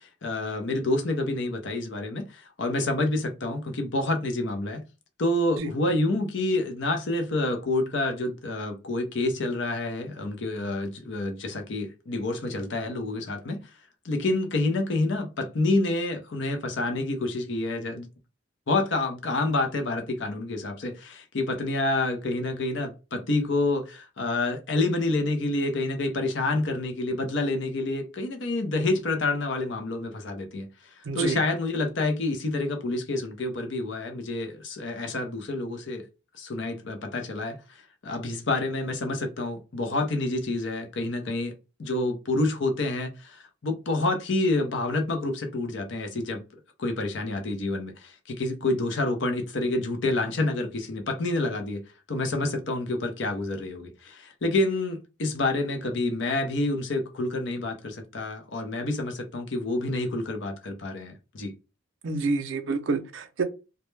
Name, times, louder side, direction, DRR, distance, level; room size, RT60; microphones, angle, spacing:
voice 1, 0.0-4.8 5.2-13.7 14.0-18.1 18.7-30.7 31.1-36.1 36.4-46.5 46.8-51.8 52.1-61.5, left 2 dB, 60° left, 0.6 m, -28 dB
voice 2, 31.1-31.4 62.0-63.4, right 3 dB, 65° right, 0.5 m, -28 dB
2.2 x 2.0 x 3.1 m
head